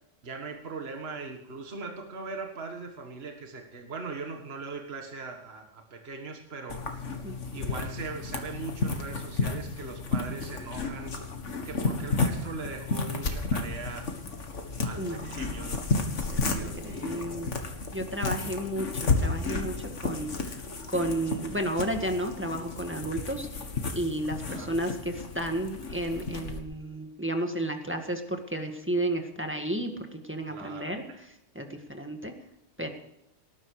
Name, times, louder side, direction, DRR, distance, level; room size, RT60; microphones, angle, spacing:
voice 1, 0.2-6.8 7.5-11.1 11.6-14.1 14.8-15.9 16.5-17.2 24.4-24.7 30.5-30.9, right 4 dB, 55° right, 3 dB, 1.8 m, -40 dB
sound 1, 6.7-26.6, left 3 dB, 80° left, 2.1 m, -32 dB
voice 2, 7.2-7.7 15.0-15.8 16.2-17.5 17.9-20.6 20.9-23.5 23.9-31.0 31.6-32.3 32.8-32.9, right 1 dB, 10° right, 3 dB, 1.8 m, -32 dB
18.5 x 11.5 x 4.9 m, 0.83 s
omnidirectional pair, 1.3 m